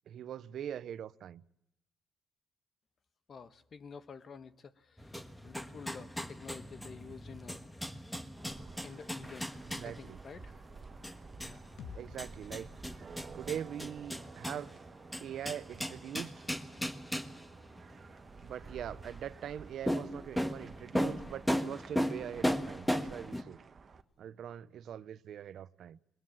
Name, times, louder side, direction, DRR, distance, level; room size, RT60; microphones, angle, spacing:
voice 1, 0.1-1.4 7.0-7.2 9.7-10.2 11.9-12.7 13.3-14.8 15.2-16.3 18.4-23.6 24.2-26.0, right 9 dB, 70° right, 0.8 m, -42 dB
voice 2, 3.3-5.1 5.4-8.0 8.8-9.5 9.8-10.6 11.4-11.6, left 5 dB, 50° left, 1.2 m, -50 dB
sound 1, 5.0-23.4, equal, 5° left, 1.4 m, -38 dB
sound 2, 8.4-24.0, right 5 dB, 45° right, 1.4 m, -53 dB
sound 3, 11.8-15.7, left 6 dB, 70° left, 1.4 m, -54 dB
21.0 x 20.5 x 7.6 m
cardioid pair, 90°, 0 cm